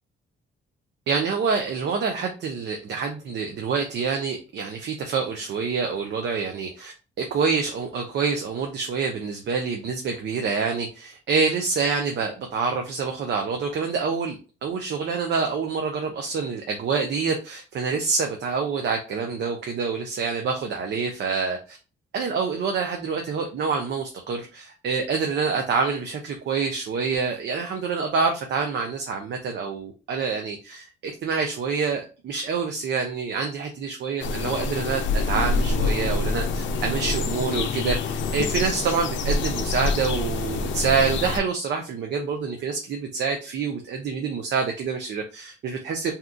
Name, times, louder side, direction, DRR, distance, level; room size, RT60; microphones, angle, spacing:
voice 1, 1.1-21.8 22.1-46.1, right 5 dB, 60° right, 3 dB, 0.6 m, -27 dB
sound 1, 34.2-41.4, left 3 dB, 70° left, 0.5 m, -26 dB
2.8 x 2.4 x 3.6 m, 0.33 s
cardioid pair, 90°, 20 cm